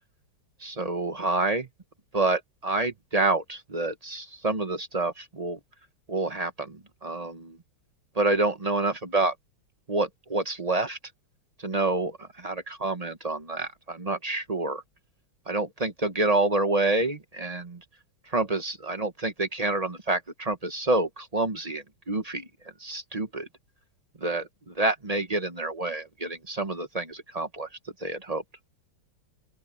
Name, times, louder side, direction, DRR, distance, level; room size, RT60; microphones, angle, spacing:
voice 1, 0.6-1.7 2.1-5.6 6.1-7.6 8.2-9.3 9.9-11.0 11.6-14.8 15.5-17.8 18.3-22.5 22.8-23.5 24.2-27.7 28.0-28.4, right 2 dB, 25° right, 0.9 m, -28 dB
open air
omnidirectional pair, 2.2 m